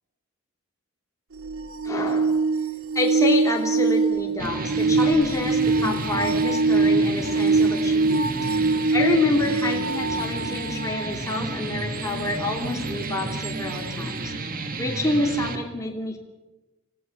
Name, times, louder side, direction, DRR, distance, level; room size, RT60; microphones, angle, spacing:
sound 1, 1.4-11.1 13.4-13.5, right 3 dB, 70° right, 1.1 m, -23 dB
voice 1, 1.8-2.4 2.9-8.4 8.9-14.3 14.8-16.2, left 2 dB, 15° left, 0 dB, 3.0 m, -27 dB
sound 2, 4.4-15.6, right 2 dB, 40° right, 2.4 m, -31 dB
29.5 x 16.5 x 7.1 m, 1.0 s
head